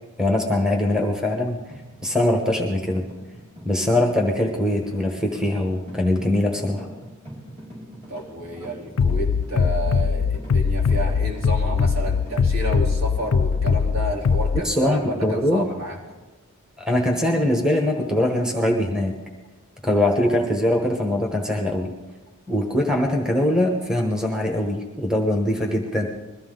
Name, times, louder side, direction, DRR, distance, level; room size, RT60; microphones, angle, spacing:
voice 1, 0.2-1.6 2.0-3.0 3.6-6.9 14.6-15.7 16.8-19.2 19.8-21.9 22.5-26.1, left 1 dB, 5° right, 0 dB, 1.1 m, -22 dB
sound 1, 1.7-16.1, equal, 25° right, 4.9 m, -43 dB
voice 2, 8.1-16.0, right 1 dB, 65° right, -2 dB, 3.2 m, -30 dB
Bass drum, 9.0-14.6, left 5 dB, 80° left, 0.4 m, -21 dB
21.5 x 14.0 x 3.8 m, 1.2 s
head